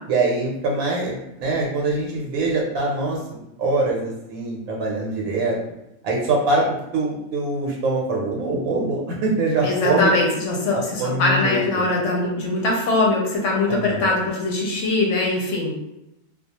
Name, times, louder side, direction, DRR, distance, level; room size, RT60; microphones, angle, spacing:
voice 1, 0.1-5.6 6.0-6.7 6.9-10.1 10.7-11.9 13.7-14.1, right 2 dB, 80° right, -2 dB, 1.0 m, -23 dB
voice 2, 9.6-15.7, left 2 dB, 70° left, -1 dB, 0.9 m, -22 dB
2.3 x 2.3 x 2.8 m, 0.89 s
omnidirectional pair, 1.4 m